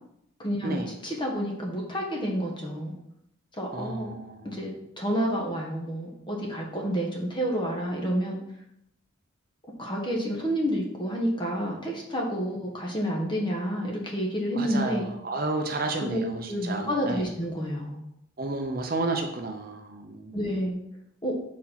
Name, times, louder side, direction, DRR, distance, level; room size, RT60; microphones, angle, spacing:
voice 1, 0.4-2.9 3.6-4.1 4.4-8.4 9.8-15.1 16.0-16.2 16.5-18.0 20.3-20.8 21.2-21.4, equal, 20° left, -1 dB, 1.2 m, -29 dB
voice 2, 3.7-4.6 14.5-17.3 18.4-20.4, right 2 dB, 45° right, 4 dB, 0.6 m, -32 dB
4.6 x 4.2 x 5.7 m, 0.78 s
head